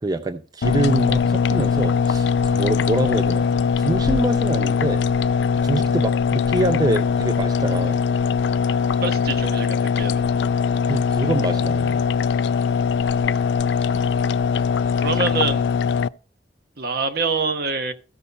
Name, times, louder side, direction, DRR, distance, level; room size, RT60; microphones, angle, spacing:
voice 1, 0.0-5.0 5.6-8.0 10.9-12.0, right 2 dB, 20° right, 9 dB, 0.5 m, -25 dB
sound 1, 0.6-16.1, left 6 dB, 75° left, 0.3 m, -21 dB
voice 2, 9.0-10.3 15.0-15.7 16.8-17.9, right 4 dB, 60° right, 7 dB, 1.1 m, -25 dB
14.5 x 5.5 x 4.1 m, 0.38 s
head